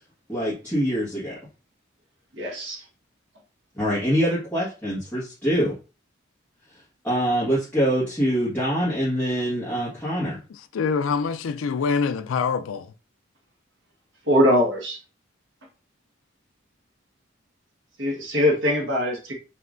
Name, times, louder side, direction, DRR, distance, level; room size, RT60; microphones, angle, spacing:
voice 1, 0.3-1.3 3.8-5.7 7.0-10.4, equal, 10° left, 1.5 m, -24 dB
voice 2, 2.4-2.8 14.2-15.0 18.0-19.3, equal, 65° right, 1.4 m, -22 dB
voice 3, 10.7-12.8, left 5 dB, 90° left, 0.4 m, -25 dB
5.5 x 2.8 x 2.5 m
head